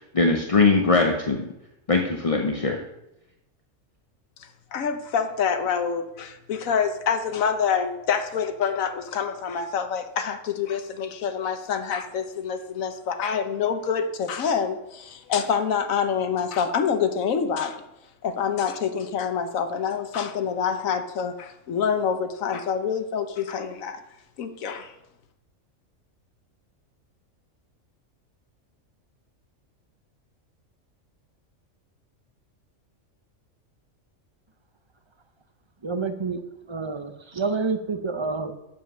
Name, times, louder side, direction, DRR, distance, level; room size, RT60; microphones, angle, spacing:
voice 1, 0.1-1.5 1.9-2.8, left 3 dB, 35° left, 2 dB, 0.6 m, -21 dB
voice 2, 4.7-17.8 18.2-24.0 24.4-24.9, left 7 dB, 85° left, 8 dB, 1.3 m, -26 dB
voice 3, 35.8-36.4 36.7-38.5, right 4 dB, 30° right, 7 dB, 0.6 m, -28 dB
7.7 x 7.3 x 6.1 m, 0.88 s
omnidirectional pair, 1.4 m